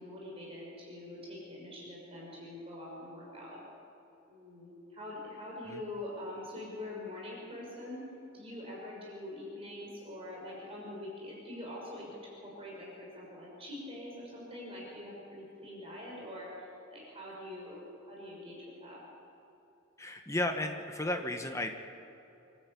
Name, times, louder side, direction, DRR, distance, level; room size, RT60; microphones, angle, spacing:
voice 1, 0.0-3.6 4.3-8.1 8.3-19.0, left 1 dB, 25° right, -4 dB, 5.9 m, -44 dB
voice 2, 20.0-21.7, left 1 dB, 15° left, 5 dB, 1.2 m, -34 dB
26.5 x 13.0 x 8.5 m, 2.9 s
head